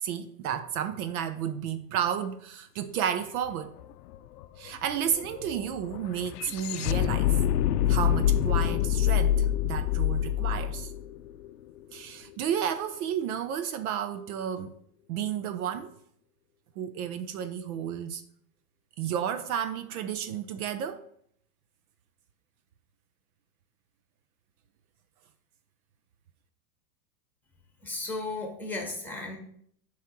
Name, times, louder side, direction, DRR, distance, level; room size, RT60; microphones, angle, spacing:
voice 1, 0.0-3.8 4.6-7.4 7.9-10.9 11.9-14.7 15.1-15.9 16.8-18.2 19.0-21.0, right 9 dB, 60° right, 0.6 m, -32 dB
sound 1, 3.4-3.5 3.8-12.0, left 11 dB, 75° left, 0.5 m, -27 dB
voice 2, 27.8-29.4, left 2 dB, 5° left, 1.5 m, -35 dB
7.2 x 3.1 x 5.9 m
hypercardioid pair, 125°, 49 cm